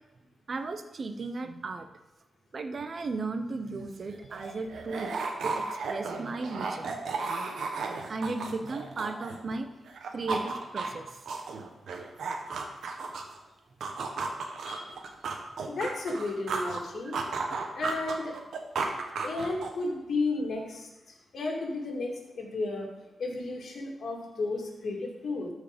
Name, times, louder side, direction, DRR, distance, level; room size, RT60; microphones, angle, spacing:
voice 1, 0.5-1.9 2.5-5.1 5.4-7.2 8.0-11.2 13.9-14.1 15.6-15.8, right 3 dB, 50° right, 8 dB, 0.9 m, -36 dB
sound 1, 3.7-9.6 9.9-13.4 13.8-16.8 17.1-19.9, right 4 dB, 85° right, 1.1 m, -34 dB
voice 2, 15.7-17.2 17.7-18.5 19.2-22.9 23.2-25.5, left 3 dB, 70° left, 0 dB, 2.2 m, -33 dB
13.0 x 4.7 x 5.2 m, 1.0 s
cardioid pair, 85°, 0 cm